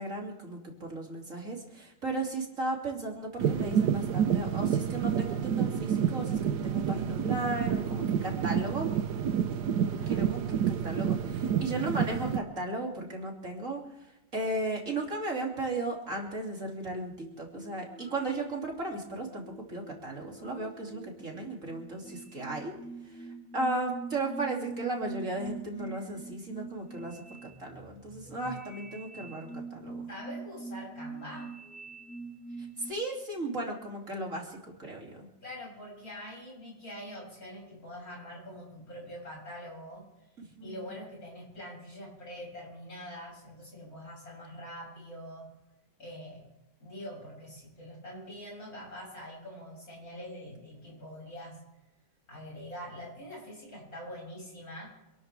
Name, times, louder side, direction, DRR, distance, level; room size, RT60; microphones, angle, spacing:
voice 1, 0.0-8.9 10.1-22.7 23.0-27.2 27.6-30.0 32.6-35.3 40.6-40.7, right 2 dB, 45° right, 0 dB, 3.2 m, -35 dB
sound 1, 3.4-12.4, right 8 dB, 70° right, 1.4 m, -29 dB
voice 2, 9.9-10.9 30.1-31.5 35.4-40.0 40.6-45.5 46.0-46.4 46.8-51.6 52.3-55.0, equal, 55° left, -2 dB, 7.8 m, -44 dB
sound 2, 17.2-32.9, right 3 dB, 5° left, 1.5 m, -45 dB
27.5 x 13.0 x 3.5 m, 0.95 s
omnidirectional pair, 1.9 m